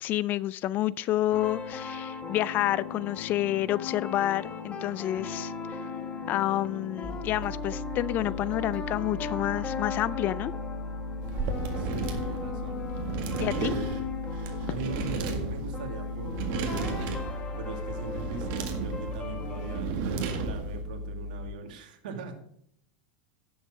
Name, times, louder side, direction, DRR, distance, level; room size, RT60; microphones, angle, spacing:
voice 1, 0.0-5.8 6.3-10.5 13.4-13.7, left 14 dB, 40° left, 20 dB, 0.4 m, -29 dB
sound 1, 1.3-19.8, left 5 dB, 25° left, 1.5 m, -38 dB
sound 2, 7.0-21.5, left 1 dB, 5° right, 1.9 m, -38 dB
sound 3, 11.2-20.8, right 5 dB, 55° right, 1.9 m, -34 dB
voice 2, 11.8-12.8 13.3-13.8 14.7-17.1 17.5-20.0 20.3-22.3, right 4 dB, 75° right, 5 dB, 2.1 m, -40 dB
10.5 x 7.2 x 4.7 m, 0.70 s
supercardioid pair, 115°, 5 cm